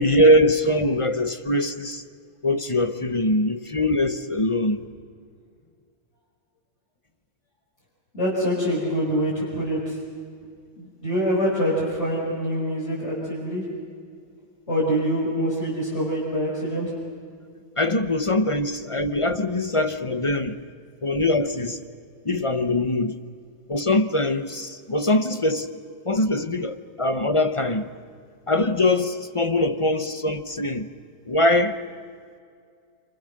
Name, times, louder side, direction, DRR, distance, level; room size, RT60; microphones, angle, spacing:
voice 1, 0.0-2.0 2.4-4.8 17.8-20.6 21.0-21.8 22.2-23.2 23.7-25.7 26.0-27.9 28.5-30.9 31.3-31.8, left 1 dB, 25° left, 0.8 m, -22 dB
voice 2, 8.1-10.0 10.7-13.6 14.7-16.9, equal, 45° left, 6.1 m, -25 dB
28.5 x 27.0 x 6.6 m
omnidirectional pair, 1.7 m